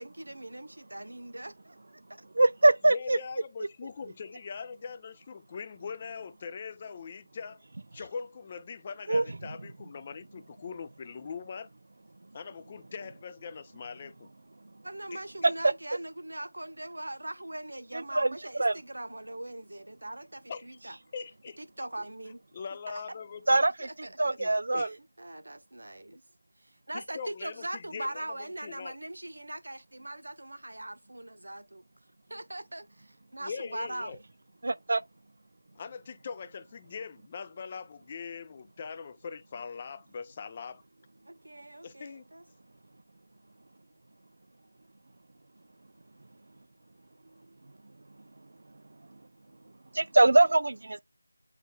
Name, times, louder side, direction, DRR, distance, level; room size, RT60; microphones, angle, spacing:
voice 1, 0.0-1.8 2.2-2.3 2.6-2.7 14.8-21.0 21.6-22.4 22.9-23.0 23.8-24.6 25.2-26.2 26.6-31.8 32.3-34.2 41.3-42.4, right 1 dB, 80° right, 0.9 m, -41 dB
voice 2, 2.4-3.2 9.1-9.2 15.4-15.5 17.9-18.3 18.6-18.7 23.5-24.9 34.6-35.0 49.9-51.0, right 2 dB, 55° right, 0.3 m, -23 dB
voice 3, 2.9-7.6 7.9-11.7 12.3-14.3 15.1-15.5 20.5-20.7 21.1-21.6 22.0-22.1 22.5-23.5 24.4-24.9 26.9-28.3 28.6-29.0 33.4-34.2 35.8-40.8 41.8-42.3, left 5 dB, 20° left, 0.3 m, -41 dB
7.5 x 3.1 x 2.2 m
figure-of-eight pair, 175°, 0 cm